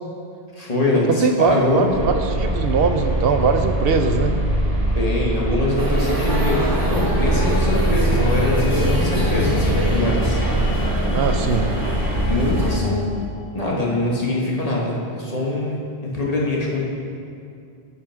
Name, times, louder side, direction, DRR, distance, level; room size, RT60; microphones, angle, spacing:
voice 1, 0.5-1.9 4.9-10.4 12.2-13.1 13.5-16.8, left 2 dB, 35° left, -4 dB, 1.5 m, -23 dB
voice 2, 1.1-4.3 11.1-11.7, right 5 dB, 70° right, 6 dB, 0.8 m, -21 dB
sound 1, 1.9-12.7, right 1 dB, 55° right, 1.8 m, -23 dB
sound 2, 5.8-12.8, right 1 dB, 20° right, 0.9 m, -25 dB
sound 3, 7.3-14.5, left 6 dB, 65° left, 0.8 m, -36 dB
11.0 x 5.5 x 4.4 m, 2.4 s
omnidirectional pair, 1.1 m